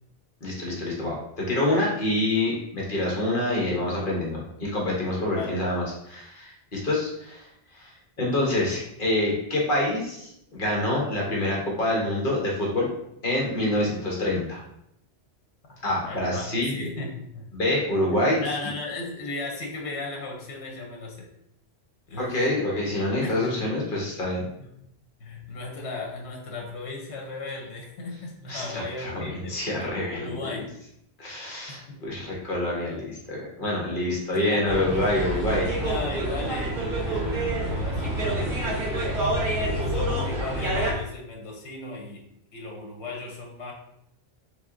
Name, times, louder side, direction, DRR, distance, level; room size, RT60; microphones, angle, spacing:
voice 1, 0.4-7.5 7.7-12.9 13.2-14.6 15.8-16.7 17.5-18.4 22.2-24.4 28.5-30.4 31.2-35.7, left 1 dB, 50° left, -3 dB, 1.2 m, -26 dB
voice 2, 15.7-17.5 18.1-21.3 22.1-22.5 22.8-23.6 24.6-24.7 25.2-30.8 31.7-32.0 34.1-34.9 35.3-39.2 39.6-42.2 42.5-43.7, left 2 dB, 80° left, 0 dB, 1.1 m, -36 dB
sound 1, 34.7-40.9, right 1 dB, 40° right, 1.9 m, -27 dB
3.4 x 3.3 x 3.7 m, 0.76 s
omnidirectional pair, 1.1 m